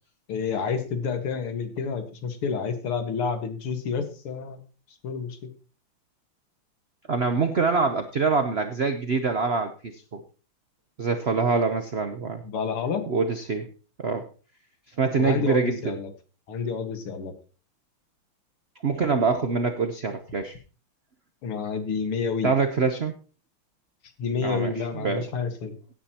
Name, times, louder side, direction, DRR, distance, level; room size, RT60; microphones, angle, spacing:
voice 1, 0.3-4.6 5.0-5.5 12.4-13.0 15.2-16.1 16.5-17.3 21.4-22.5 24.2-25.7, left 5 dB, 85° left, 7 dB, 2.5 m, -29 dB
voice 2, 7.1-10.2 11.0-12.4 13.1-13.7 14.0-14.3 14.9-16.0 18.8-20.5 22.4-23.1 24.4-25.2, right 4 dB, 65° right, 7 dB, 0.6 m, -25 dB
16.5 x 9.3 x 2.9 m, 0.36 s
omnidirectional pair, 2.4 m